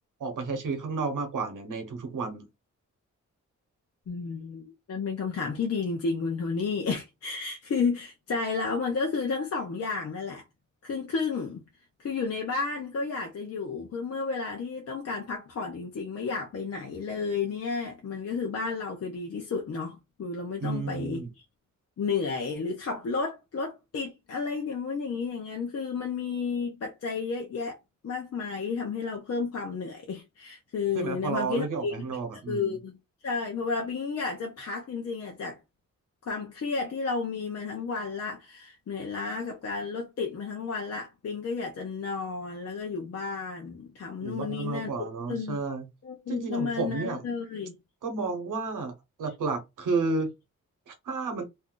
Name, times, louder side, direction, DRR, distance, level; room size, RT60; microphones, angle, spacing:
voice 1, 0.2-2.5 20.6-21.3 30.9-32.7 44.2-45.8 46.3-47.2 48.0-48.9 49.2-50.3 50.9-51.4, right 4 dB, 90° right, 0.9 m, -31 dB
voice 2, 4.1-10.4 10.8-11.6 12.0-21.2 22.0-27.8 28.0-31.9 32.5-33.0 33.2-35.6 36.2-44.9 45.3-45.6 46.0-47.8, left 4 dB, 55° left, 0.6 m, -32 dB
2.6 x 2.3 x 3.6 m
wide cardioid pair, 145°, 31 cm